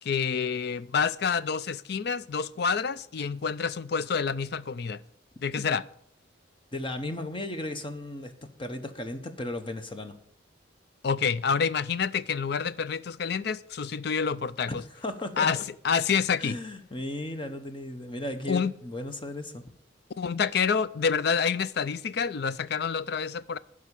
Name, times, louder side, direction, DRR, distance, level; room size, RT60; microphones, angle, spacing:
voice 1, 0.0-5.0 5.4-5.8 11.0-14.8 15.4-15.6 15.8-16.6 18.5-18.7 20.2-23.6, left 6 dB, 55° left, 0.4 m, -28 dB
voice 2, 6.7-8.3 8.6-10.2 14.7-15.6 16.4-19.6, left 1 dB, 25° left, 1.0 m, -35 dB
12.0 x 5.0 x 8.3 m
head